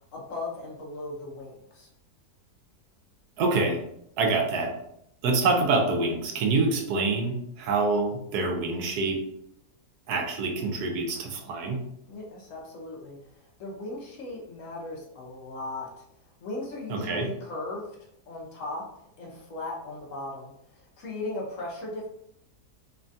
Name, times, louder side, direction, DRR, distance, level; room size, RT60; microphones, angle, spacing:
voice 1, 0.1-1.9 12.1-16.0 16.4-17.9 18.3-18.9 19.2-22.1, left 2 dB, 65° left, -2 dB, 0.9 m, -37 dB
voice 2, 3.4-3.8 4.2-4.7 5.2-9.2 10.1-11.8 16.9-17.3, right 3 dB, 85° right, 2 dB, 1.1 m, -26 dB
3.2 x 2.2 x 2.6 m, 0.76 s
omnidirectional pair, 1.7 m